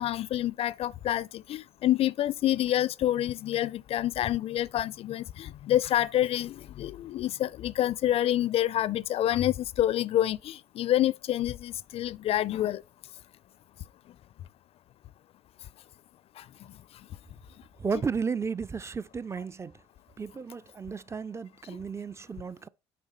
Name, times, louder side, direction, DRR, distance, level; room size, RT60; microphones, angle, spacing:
voice 1, 0.0-12.8 16.4-16.5 21.7-21.8, left 13 dB, 45° left, 0.4 m, -27 dB
voice 2, 17.8-19.7 20.2-22.7, right 5 dB, 20° right, 0.4 m, -33 dB
8.3 x 4.9 x 4.2 m
hypercardioid pair, 60°, 14 cm